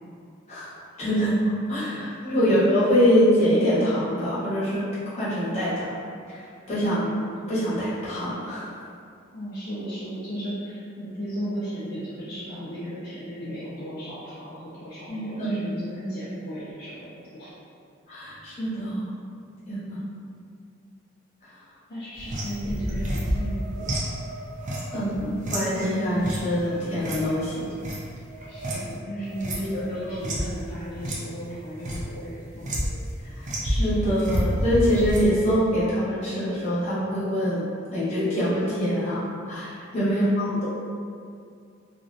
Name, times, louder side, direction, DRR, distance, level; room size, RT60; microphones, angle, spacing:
voice 1, 1.0-1.4 1.7-5.9 6.3-6.4 6.7-7.1 7.5-8.6 15.1-15.6 18.1-19.1 19.7-20.0 24.9-27.7 29.6-29.8 30.1-30.2 33.6-37.6 37.9-40.6, equal, 35° left, -12 dB, 0.8 m, -24 dB
voice 2, 2.3-2.6 2.9-3.0 9.3-17.5 21.9-23.9 28.5-32.7 40.0-40.3, equal, 50° left, -11 dB, 0.4 m, -35 dB
sound 1, 22.2-29.0 29.2-30.5 31.0-31.2 31.5-32.1 32.6-33.1 33.4-35.3, equal, 35° right, 0.3 m, -30 dB
2.4 x 2.1 x 2.6 m, 2.3 s
head